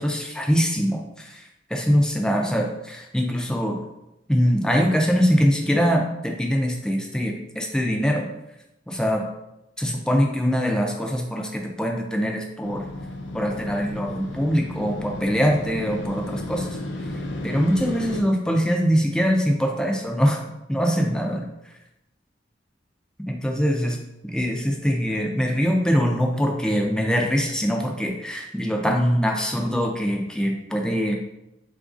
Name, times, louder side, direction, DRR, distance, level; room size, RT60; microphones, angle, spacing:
voice 1, 0.0-3.8 4.3-8.3 8.9-9.2 9.8-12.8 13.3-20.4 20.7-21.5 23.3-24.0 24.2-31.1, equal, 5° left, 1 dB, 0.3 m, -23 dB
Motorcycle, 12.6-18.2, left 1 dB, 85° left, 0.5 m, -33 dB
3.8 x 2.4 x 2.4 m, 0.88 s
head